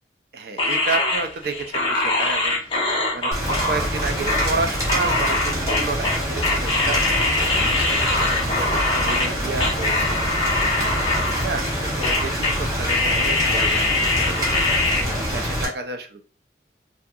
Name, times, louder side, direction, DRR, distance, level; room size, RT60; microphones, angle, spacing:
voice 1, 0.3-2.6 3.1-7.1 7.6-10.2 11.4-12.5 12.8-16.3, right 4 dB, 60° right, 6 dB, 0.4 m, -31 dB
sound 1, 0.6-9.3 9.6-11.7 12.0-12.6 12.9-15.0, left 2 dB, 30° left, 0.6 m, -23 dB
Rain, 3.3-15.6, equal, 20° right, 0.8 m, -26 dB
2.7 x 2.4 x 2.3 m, 0.39 s
head